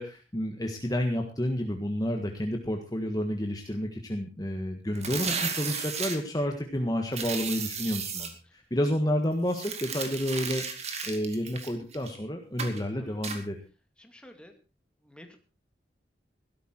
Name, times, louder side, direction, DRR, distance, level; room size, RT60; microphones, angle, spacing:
voice 1, 0.0-13.6, equal, 20° left, 3 dB, 1.6 m, -30 dB
sound 1, 4.9-6.2 7.1-8.3 9.5-12.2 12.6-12.8 13.2-13.4, right 6 dB, 40° right, 2.4 m, -34 dB
voice 2, 14.0-14.5 15.0-15.4, left 1 dB, 5° left, 5 dB, 2.2 m, -51 dB
16.5 x 13.0 x 4.5 m, 0.32 s
head